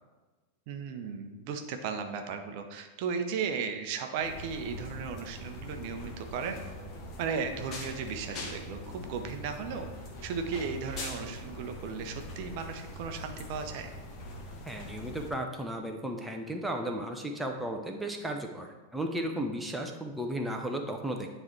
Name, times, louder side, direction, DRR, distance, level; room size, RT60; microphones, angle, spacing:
voice 1, 0.7-6.6 7.2-9.9 10.2-13.9, right 6 dB, 45° right, 5 dB, 0.8 m, -35 dB
sound 1, 4.2-15.3, left 1 dB, 35° left, 1.4 m, -42 dB
voice 2, 14.7-21.3, right 1 dB, 5° right, 2 dB, 0.7 m, -34 dB
9.5 x 3.3 x 4.5 m, 1.2 s
figure-of-eight pair, 90°, 0 cm